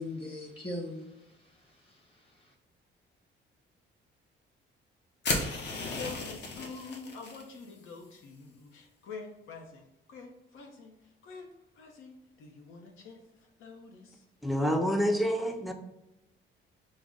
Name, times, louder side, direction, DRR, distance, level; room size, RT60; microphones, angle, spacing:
voice 1, 0.0-2.5, left 2 dB, 25° left, 1.0 m, -41 dB
sound 1, 5.2-7.4, left 3 dB, 60° left, 0.8 m, -34 dB
voice 2, 5.6-14.2, left 4 dB, 90° left, 0.8 m, -46 dB
voice 3, 14.4-15.7, equal, ahead, 0.3 m, -27 dB
4.8 x 2.1 x 3.7 m
cardioid pair, 165°, 20 cm